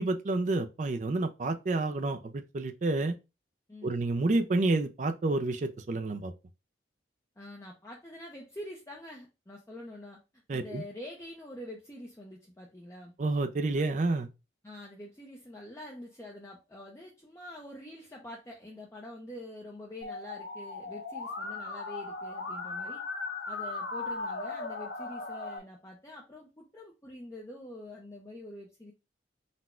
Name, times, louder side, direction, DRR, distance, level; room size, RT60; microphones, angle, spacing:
voice 1, 0.0-3.1 3.8-6.3 10.5-10.8 13.2-14.3, right 2 dB, 40° right, 0.4 m, -29 dB
voice 2, 7.4-10.2 10.5-13.1 14.6-23.0 23.5-28.9, left 1 dB, 15° left, 0.5 m, -46 dB
Musical instrument, 20.0-25.6, left 3 dB, 85° left, 0.8 m, -37 dB
4.1 x 2.2 x 4.3 m
head